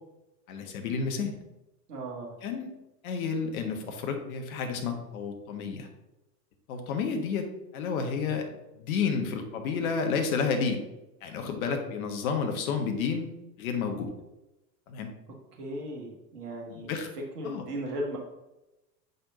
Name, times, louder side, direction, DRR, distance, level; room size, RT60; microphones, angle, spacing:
voice 1, 0.5-1.3 2.4-2.7 3.0-5.9 6.7-8.5 8.8-10.8 11.2-13.3 13.6-14.1 14.9-15.1 16.7-17.1 17.4-17.6, left 5 dB, 55° left, 4 dB, 1.4 m, -31 dB
voice 2, 1.9-2.3 15.6-16.9 17.4-18.2, right 1 dB, 65° right, -1 dB, 1.8 m, -36 dB
6.8 x 5.3 x 4.0 m, 0.96 s
figure-of-eight pair, 80°, 50 cm